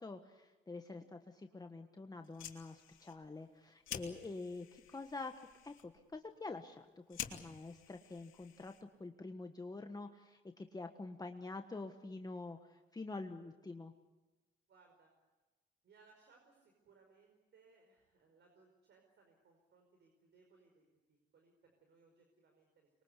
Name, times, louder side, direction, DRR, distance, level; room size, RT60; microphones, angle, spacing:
voice 1, 0.0-5.3 5.6-8.7 9.0-13.9, left 3 dB, 20° left, 5 dB, 1.4 m, -47 dB
Fire, 2.2-9.1, left 10 dB, 80° left, 3.0 m, -51 dB
voice 2, 14.7-15.1 15.8-22.9, right 4 dB, 65° right, 3 dB, 5.1 m, -68 dB
25.0 x 23.0 x 8.3 m, 1.1 s
cardioid pair, 90°, 20 cm